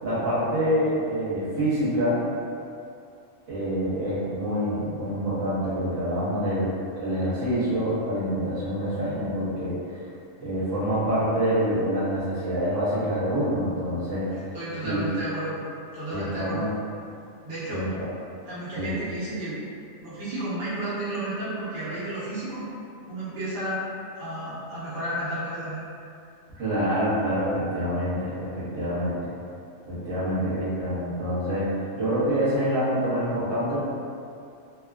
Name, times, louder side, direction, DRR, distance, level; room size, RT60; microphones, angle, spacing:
voice 1, 0.0-2.2 3.5-9.8 10.4-14.3 14.8-15.0 16.1-16.7 17.7-18.1 18.8-18.9 26.6-29.2 29.9-31.7 31.9-33.9, equal, 75° right, -11 dB, 1.2 m, -26 dB
voice 2, 14.3-15.6 15.9-16.7 17.4-17.8 18.5-19.6 20.0-22.6 23.1-23.8 24.2-25.8, right 1 dB, 55° right, -11 dB, 1.0 m, -32 dB
2.8 x 2.3 x 2.3 m, 2.5 s
omnidirectional pair, 1.3 m